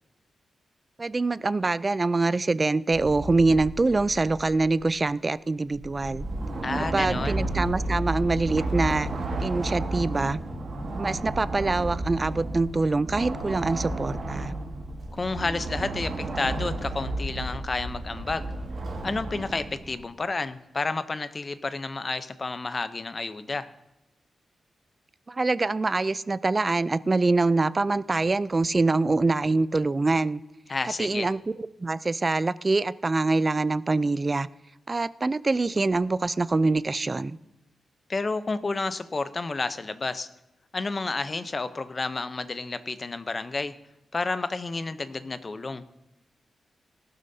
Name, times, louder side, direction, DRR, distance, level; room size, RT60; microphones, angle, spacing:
voice 1, 1.0-6.2 6.9-9.1 9.4-10.4 11.0-14.6 25.3-30.4 31.0-34.5 34.9-37.4, right 3 dB, 25° right, 17 dB, 0.3 m, -24 dB
sound 1, 2.9-4.9 5.7-20.0, right 2 dB, 50° right, 2.2 m, -32 dB
voice 2, 6.6-7.4 15.1-18.5 19.0-23.7 30.7-31.3 38.1-40.3 40.7-43.7 44.1-45.8, left 3 dB, 30° left, 12 dB, 0.6 m, -30 dB
18.5 x 12.0 x 2.7 m, 0.95 s
wide cardioid pair, 135°, 0 cm